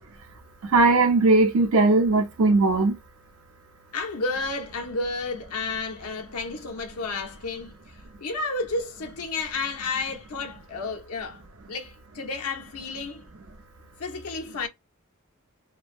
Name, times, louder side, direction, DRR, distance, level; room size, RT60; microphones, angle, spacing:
voice 1, 0.7-2.9, right 3 dB, 70° right, 0.6 m, -19 dB
voice 2, 3.9-7.7 8.2-11.4 11.7-13.2 14.0-14.7, left 3 dB, 80° left, 0.6 m, -31 dB
2.6 x 2.2 x 2.4 m
head